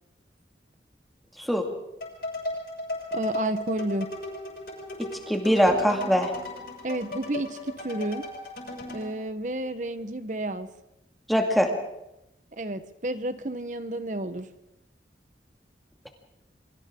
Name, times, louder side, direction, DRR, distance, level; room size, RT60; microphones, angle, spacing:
sound 1, 2.0-9.1, left 1 dB, 55° left, 6.4 m, -36 dB
voice 1, 3.1-4.1 6.8-8.3 8.9-10.7 12.5-14.5, right 1 dB, 45° right, 11 dB, 1.1 m, -31 dB
voice 2, 5.3-6.3 11.3-11.7, equal, ahead, 2 dB, 2.2 m, -22 dB
28.5 x 24.0 x 3.8 m, 0.88 s
head